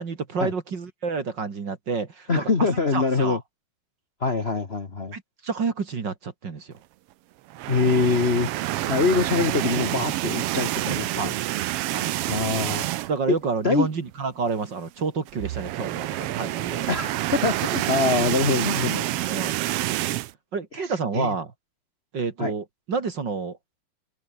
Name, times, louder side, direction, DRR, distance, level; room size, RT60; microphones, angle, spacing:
voice 1, 0.0-3.4 5.1-6.8 11.1-11.3 11.9-12.1 13.1-17.0 19.3-19.6 20.5-21.5 22.1-23.6, right 5 dB, 40° right, 2.5 m, -29 dB
voice 2, 2.3-3.4 4.2-5.1 7.7-8.5 8.9-11.3 12.3-12.8 13.3-13.4 13.6-13.9 16.9-19.1 20.8-20.9 21.1-21.3 22.4-22.5, left 4 dB, 35° left, 1.0 m, -24 dB
sound 1, 7.5-13.3 13.7-13.9 14.1-14.2 15.3-20.3, right 15 dB, 85° right, 1.3 m, -28 dB
omnidirectional pair, 3.5 m